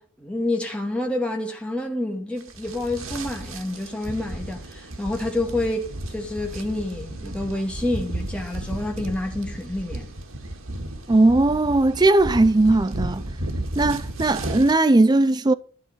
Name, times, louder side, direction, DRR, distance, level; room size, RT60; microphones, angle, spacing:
voice 1, 0.0-10.1, left 1 dB, 5° left, 2.1 m, -28 dB
sound 1, 2.4-14.8, right 1 dB, 85° right, 1.9 m, -33 dB
voice 2, 11.1-13.2 13.8-15.5, right 2 dB, 20° right, 0.5 m, -18 dB
12.0 x 5.4 x 8.9 m
head